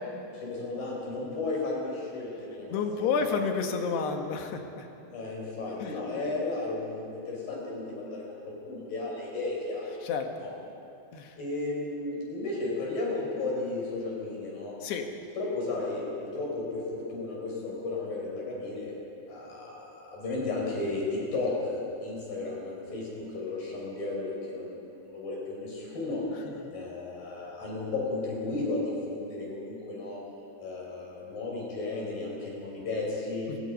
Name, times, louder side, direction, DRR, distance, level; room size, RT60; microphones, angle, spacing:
voice 1, 0.3-3.3 3.7-3.9 5.1-10.0 10.4-10.5 11.4-14.8 15.4-18.9 19.3-23.1 23.3-26.2 26.7-28.8 29.1-30.2 30.6-33.5, left 2 dB, 50° left, -3 dB, 7.6 m, -34 dB
voice 2, 2.7-4.9 5.7-6.0 10.0-10.3 11.1-11.4 14.8-15.1 26.6-26.7 33.5-33.6, left 5 dB, 70° left, 4 dB, 3.5 m, -30 dB
30.0 x 21.5 x 5.5 m, 2.8 s
omnidirectional pair, 5.1 m